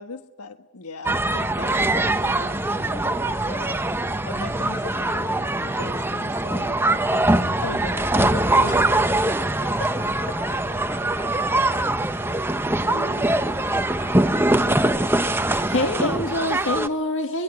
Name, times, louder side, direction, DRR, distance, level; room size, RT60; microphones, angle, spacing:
voice 1, 0.0-3.8 4.2-9.9 12.1-12.3 12.8-13.5, left 3 dB, 85° left, 8 dB, 1.5 m, -38 dB
sound 1, 1.0-16.9, right 2 dB, 10° right, 1.0 m, -23 dB
voice 2, 9.7-12.6 13.2-15.0, left 2 dB, 15° left, 5 dB, 7.0 m, -43 dB
voice 3, 15.5-17.4, left 2 dB, 60° left, 5 dB, 2.1 m, -25 dB
24.5 x 23.0 x 9.7 m, 0.94 s
head